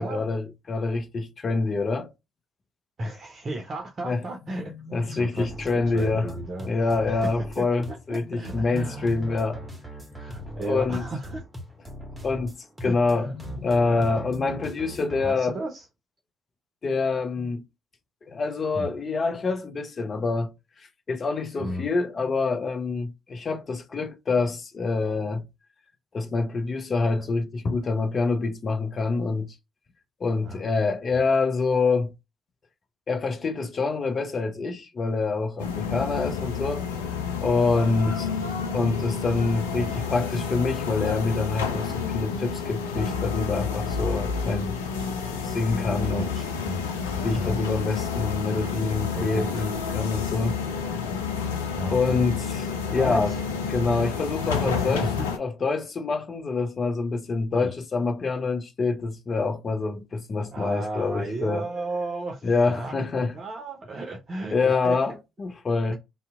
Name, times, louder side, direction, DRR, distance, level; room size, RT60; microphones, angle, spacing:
voice 1, 0.0-2.1 4.0-4.2 4.5-6.3 6.7-9.6 10.5-11.0 12.2-15.6 16.8-17.6 18.3-20.5 21.1-25.4 26.1-29.5 30.2-32.1 33.1-36.8 37.4-38.3 38.7-44.8 45.4-46.3 47.2-50.6 51.9-53.3 53.7-55.1 55.4-61.6 62.4-63.3 64.5-65.9, left 3 dB, 40° left, 0.6 m, -26 dB
voice 2, 3.0-7.3 7.9-9.7 10.1-11.4 12.8-13.4 15.2-15.9 18.7-18.9 21.6-21.9 30.4-30.9 36.2-36.3 38.0-38.2 39.7-39.9 46.2-46.8 47.3-47.5 49.1-49.6 51.8-52.2 52.9-53.4 54.7-55.3 57.5-57.7 60.5-65.0 65.9-66.0, right 1 dB, 40° right, 0.6 m, -34 dB
sound 1, 5.4-15.2, right 1 dB, 10° right, 0.9 m, -40 dB
sound 2, 35.6-55.4, left 6 dB, 80° left, 0.4 m, -29 dB
2.7 x 2.1 x 3.5 m
figure-of-eight pair, 50°, 0 cm